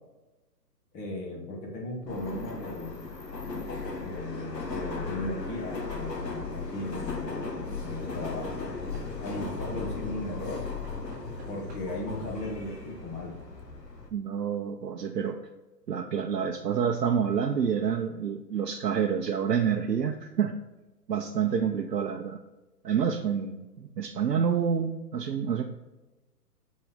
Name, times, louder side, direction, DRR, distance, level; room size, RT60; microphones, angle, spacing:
voice 1, 0.9-3.0 4.0-8.5 9.2-10.6 11.5-13.3, left 1 dB, 15° left, -2 dB, 1.2 m, -37 dB
Subway metro underground, 2.1-14.1, left 3 dB, 85° left, 1.3 m, -36 dB
Knock / Wood, 6.0-6.2 8.0-9.5 10.5-12.1 13.2-13.3 13.5-13.6, right 1 dB, 15° right, 1.0 m, -52 dB
voice 2, 14.1-15.4 15.9-20.6 21.1-22.4 22.8-25.6, right 7 dB, 75° right, 4 dB, 0.7 m, -28 dB
6.7 x 4.2 x 3.6 m, 1.1 s
figure-of-eight pair, 130°, 48 cm